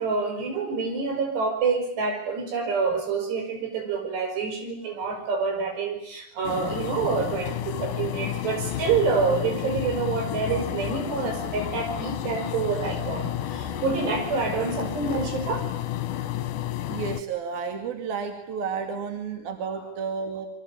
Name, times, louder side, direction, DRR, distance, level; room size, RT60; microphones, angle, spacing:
voice 1, 0.0-15.7, right 5 dB, 85° right, 5 dB, 7.4 m, -27 dB
sound 1, 6.4-17.2, left 11 dB, 65° left, 2.4 m, -31 dB
voice 2, 16.9-20.5, right 6 dB, 65° right, 5 dB, 4.1 m, -31 dB
28.0 x 23.5 x 8.9 m, 0.72 s
omnidirectional pair, 4.7 m